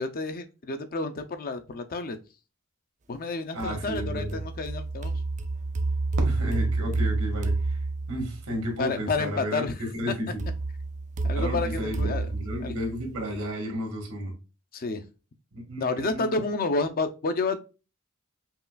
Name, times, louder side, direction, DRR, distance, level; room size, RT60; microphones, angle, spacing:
voice 1, 0.0-2.2 3.1-5.2 8.8-10.1 11.2-12.3 12.6-12.7 14.7-15.0 15.8-17.6, left 3 dB, 40° left, 0.5 m, -30 dB
voice 2, 3.5-4.4 6.2-7.8 8.1-9.6 10.0-10.5 11.3-14.3 15.5-16.4, equal, 85° right, 1.8 m, -33 dB
sound 1, 3.6-8.6 10.4-13.4, right 3 dB, 35° right, 0.4 m, -29 dB
Fireworks, 6.1-8.3, right 1 dB, 60° right, 0.9 m, -39 dB
5.5 x 2.4 x 2.3 m
head